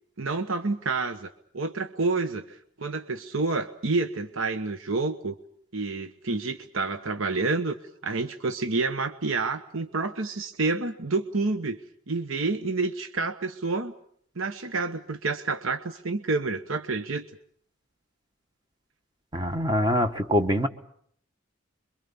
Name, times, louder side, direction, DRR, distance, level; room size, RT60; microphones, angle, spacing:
voice 1, 0.2-5.3 5.7-7.8 8.0-11.8 12.1-13.9 14.4-17.2, right 3 dB, 70° right, 9 dB, 1.1 m, -29 dB
voice 2, 19.3-20.7, equal, 20° right, 6 dB, 1.3 m, -24 dB
27.0 x 23.5 x 7.0 m, 0.67 s
head